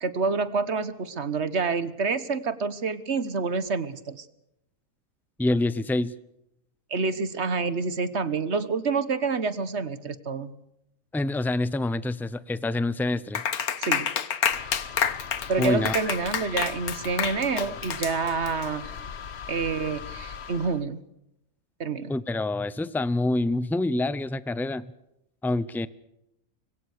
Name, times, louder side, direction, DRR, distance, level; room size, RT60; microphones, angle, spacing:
voice 1, 0.0-4.2 6.9-10.5 13.8-14.1 15.5-18.9 19.5-21.0 21.8-22.1, right 4 dB, 50° right, 14 dB, 1.5 m, -28 dB
voice 2, 5.4-6.1 11.1-13.4 15.6-15.9 22.1-24.9 25.4-25.9, left 2 dB, ahead, 17 dB, 0.4 m, -26 dB
Clapping, 13.3-18.6, left 8 dB, 85° left, 1.7 m, -28 dB
sound 1, 14.5-20.8, left 7 dB, 50° left, 1.2 m, -40 dB
25.5 x 22.0 x 6.6 m, 0.83 s
omnidirectional pair, 1.5 m